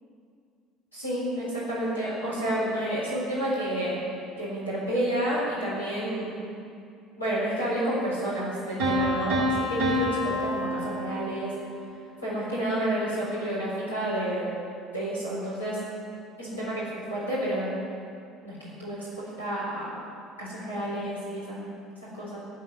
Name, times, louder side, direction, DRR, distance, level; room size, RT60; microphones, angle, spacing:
voice 1, 0.9-4.0 4.4-6.3 7.2-11.5 12.2-14.5 14.9-15.8 16.4-16.8 17.1-17.7 18.4-19.9 20.4-21.6 22.0-22.4, right 1 dB, 85° left, -8 dB, 4.0 m, -30 dB
Piano, 8.8-11.7, equal, 65° right, 3.5 m, -27 dB
16.0 x 5.6 x 9.9 m, 2.4 s
figure-of-eight pair, 60°, 0 cm